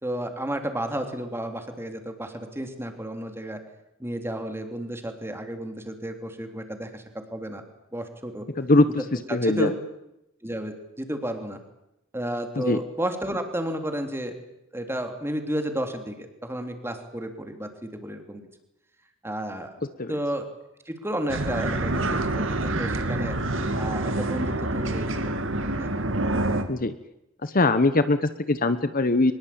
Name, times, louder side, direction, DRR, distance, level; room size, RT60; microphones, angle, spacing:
voice 1, 0.0-3.6 4.0-7.0 7.3-7.6 7.9-8.5 9.3-9.7 10.4-11.6 12.1-14.3 14.7-18.5 19.2-19.8 20.1-20.5 20.8-23.3 23.8-25.1 25.8-25.9, right 1 dB, 10° right, 6 dB, 3.4 m, -32 dB
voice 2, 8.6-9.7 12.6-12.8 20.0-20.1 26.7-26.9 27.4-29.3, left 2 dB, 45° left, 12 dB, 1.1 m, -22 dB
sound 1, 21.3-26.6, right 2 dB, 65° right, 2.5 m, -27 dB
24.0 x 21.5 x 8.8 m, 0.86 s
head